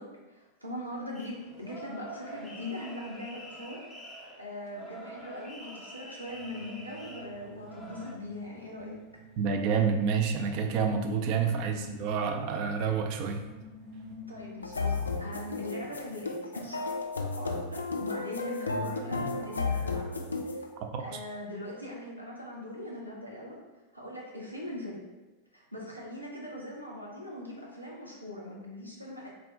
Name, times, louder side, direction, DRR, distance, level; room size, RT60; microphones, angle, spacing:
voice 1, 0.0-3.8 4.4-9.0 14.3-16.9 17.3-20.3 20.5-20.6 21.0-23.6 23.9-25.0 25.5-29.3, left 1 dB, 90° right, -4 dB, 0.6 m, -41 dB
sound 1, 1.1-8.1, right 1 dB, 20° left, 0.6 m, -46 dB
sound 2, 6.3-14.9, left 1 dB, 25° right, 0.7 m, -49 dB
voice 2, 9.4-13.4 20.8-21.0, right 6 dB, 45° right, 5 dB, 0.3 m, -28 dB
sound 3, 14.6-20.7, left 3 dB, 75° left, 0.3 m, -33 dB
2.5 x 2.0 x 3.5 m, 1.1 s
figure-of-eight pair, 90°, 0 cm